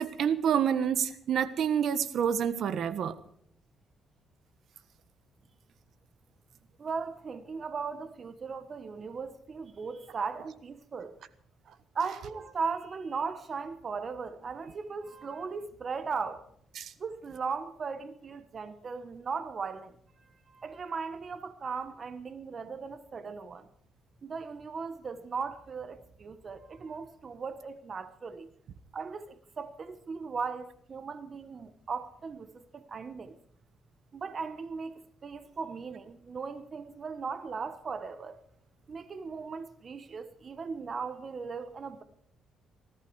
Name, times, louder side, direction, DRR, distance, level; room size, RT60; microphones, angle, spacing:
voice 1, 0.0-3.2 16.7-16.9, right 8 dB, 65° right, 1.3 m, -28 dB
voice 2, 6.8-11.2 11.9-16.5 17.0-23.7 24.2-28.5 28.9-33.4 34.1-38.4 38.9-42.0, right 5 dB, 45° right, 1.2 m, -38 dB
19.5 x 14.5 x 4.8 m
cardioid pair, 90°, 0 cm